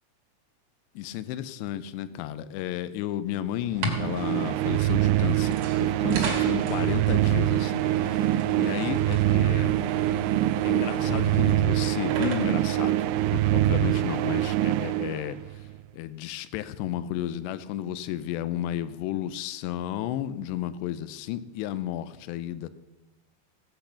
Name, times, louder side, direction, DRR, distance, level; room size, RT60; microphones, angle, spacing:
voice 1, 1.0-9.8 10.6-15.4 15.9-22.7, left 12 dB, 80° left, 14 dB, 2.7 m, -33 dB
sound 1, 3.6-13.9, right 2 dB, 50° right, 2.8 m, -38 dB
sound 2, 3.8-15.7, right 14 dB, 90° right, 3.0 m, -24 dB
17.0 x 8.4 x 5.7 m, 1.1 s
omnidirectional pair, 5.3 m